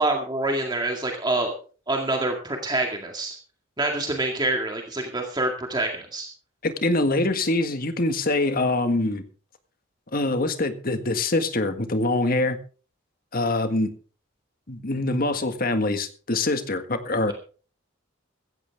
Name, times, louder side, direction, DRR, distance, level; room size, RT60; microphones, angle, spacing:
voice 1, 0.0-1.5 1.9-3.4 3.8-6.3, right 2 dB, 20° right, 2 dB, 2.1 m, -26 dB
voice 2, 6.6-9.2 10.1-12.6 13.3-13.9 14.7-17.3, left 2 dB, 45° left, 8 dB, 1.7 m, -24 dB
16.0 x 15.0 x 3.6 m, 0.39 s
head